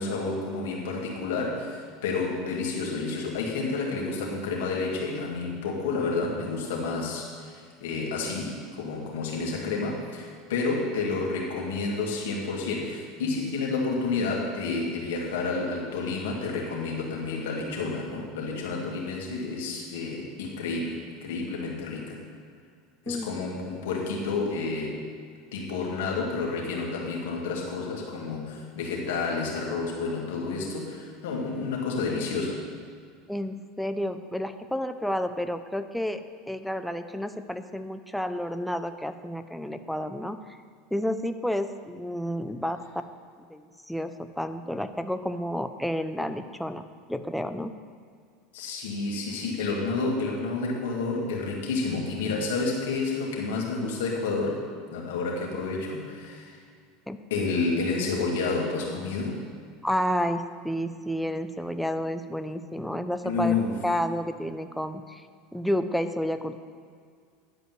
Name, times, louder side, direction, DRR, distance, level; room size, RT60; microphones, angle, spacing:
voice 1, 0.0-22.2 23.1-25.0 25.5-32.6 48.5-54.6 54.9-56.6 57.3-59.4 63.2-63.7, left 3 dB, 80° left, -2 dB, 2.4 m, -30 dB
voice 2, 33.3-40.6 40.9-42.8 43.4-46.8 47.1-47.7 57.1-57.2 59.8-63.6 63.8-65.3 65.5-66.6, equal, ahead, 9 dB, 0.6 m, -30 dB
11.0 x 5.2 x 7.7 m, 2.1 s
supercardioid pair, 105°, 0 cm